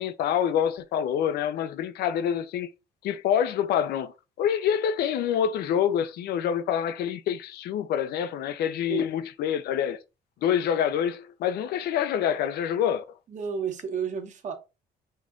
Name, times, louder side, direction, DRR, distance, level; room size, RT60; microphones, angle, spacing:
voice 1, 0.0-2.7 3.0-10.0 10.4-13.0, left 9 dB, 70° left, 0.7 m, -26 dB
voice 2, 13.3-14.5, right 7 dB, 45° right, 1.3 m, -31 dB
5.3 x 2.6 x 3.7 m
cardioid pair, 110°, 17 cm